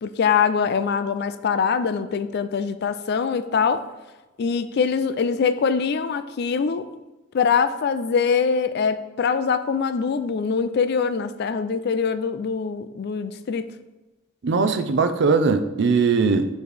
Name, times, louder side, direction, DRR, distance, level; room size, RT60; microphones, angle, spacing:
voice 1, 0.0-3.8 4.4-6.8 7.3-13.7, left 6 dB, 50° left, 11 dB, 0.3 m, -23 dB
voice 2, 14.4-16.6, right 4 dB, 55° right, 9 dB, 0.4 m, -20 dB
9.0 x 3.1 x 3.3 m, 1.1 s
head